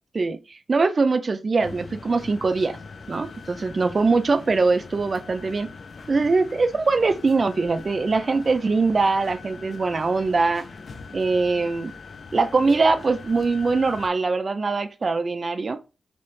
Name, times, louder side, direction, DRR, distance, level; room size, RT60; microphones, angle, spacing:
voice 1, 0.1-2.8 3.1-5.7 6.1-10.7 11.1-11.9 12.3-15.8, right 3 dB, 45° right, 0.3 m, -22 dB
sound 1, 1.6-14.1, left 4 dB, 50° left, 0.4 m, -42 dB
3.1 x 2.8 x 3.1 m
wide cardioid pair, 100°, 0 cm